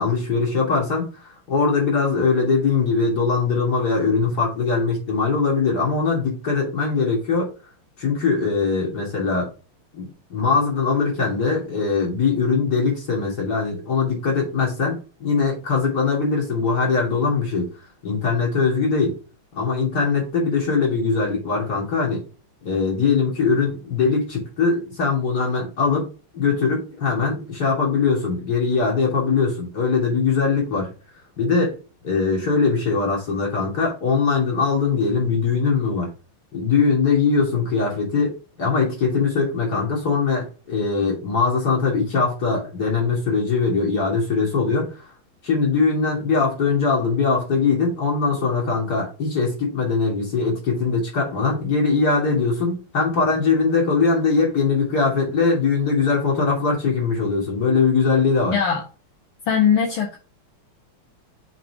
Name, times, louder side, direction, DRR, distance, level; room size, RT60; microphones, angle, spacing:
voice 1, 0.0-7.5 8.0-9.5 9.9-17.7 18.0-19.2 19.5-22.2 22.6-30.9 31.4-31.8 32.0-36.1 36.5-45.0 45.4-58.6, left 4 dB, 45° left, 3.2 m, -21 dB
voice 2, 58.5-58.8 59.5-60.2, left 7 dB, 65° left, 2.1 m, -20 dB
5.9 x 5.4 x 3.7 m
omnidirectional pair, 2.4 m